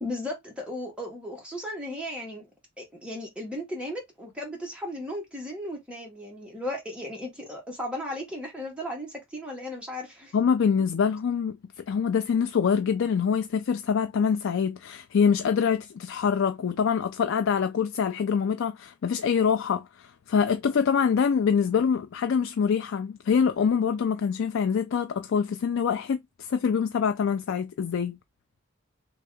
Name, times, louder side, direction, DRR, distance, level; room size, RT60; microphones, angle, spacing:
voice 1, 0.0-2.5 2.8-10.3, left 1 dB, 5° right, 1.6 m, -36 dB
voice 2, 10.3-28.2, left 6 dB, 65° left, 0.4 m, -25 dB
3.5 x 2.9 x 3.4 m
head